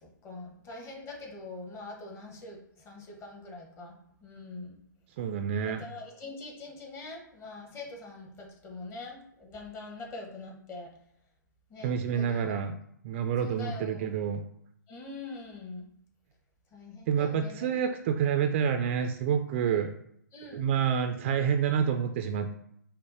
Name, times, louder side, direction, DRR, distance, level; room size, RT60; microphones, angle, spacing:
voice 1, 0.0-2.6 2.8-4.0 4.2-4.8 5.6-10.9 11.7-12.6 13.4-14.1 14.9-15.9 16.7-17.7 19.6-19.8 20.3-20.6, left 3 dB, 25° left, 0 dB, 1.1 m, -43 dB
voice 2, 5.2-5.9 11.8-12.8 13.0-14.4 17.1-19.9 20.5-22.5, right 7 dB, 35° right, 7 dB, 0.4 m, -28 dB
5.3 x 2.1 x 4.2 m, 0.70 s
hypercardioid pair, 135°, 11 cm